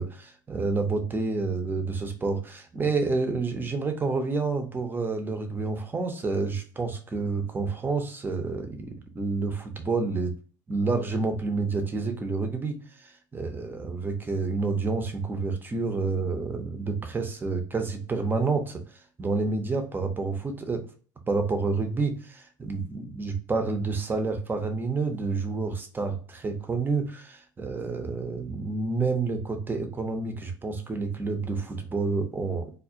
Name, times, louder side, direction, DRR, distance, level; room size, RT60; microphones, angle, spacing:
voice 1, 0.0-10.3 10.7-18.8 19.2-20.8 21.3-32.7, right 4 dB, 20° right, 6 dB, 0.6 m, -29 dB
2.3 x 2.1 x 2.6 m, 0.41 s
hypercardioid pair, 70°, 10 cm